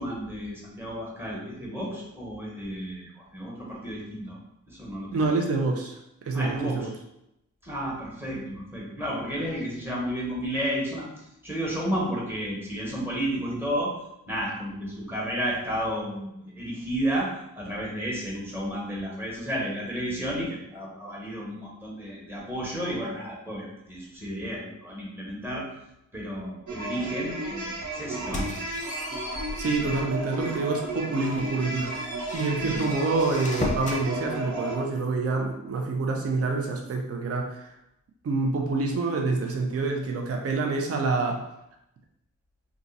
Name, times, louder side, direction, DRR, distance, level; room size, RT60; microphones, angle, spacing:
voice 1, 0.0-4.4 4.7-5.3 6.3-6.9 7.6-13.9 14.3-25.7 26.1-28.5 32.6-32.8, equal, 5° right, -4 dB, 1.2 m, -32 dB
voice 2, 5.1-6.0 6.2-6.9 29.3-32.0 32.3-37.7 38.2-41.4, right 3 dB, 50° right, 1 dB, 0.6 m, -27 dB
sound 1, 26.7-34.8, right 1 dB, 75° right, 0.9 m, -34 dB
sound 2, 28.1-30.2 30.7-30.8 31.2-34.0, left 2 dB, 25° left, 0.7 m, -36 dB
2.5 x 2.4 x 4.0 m, 0.84 s
cardioid pair, 80°, 30 cm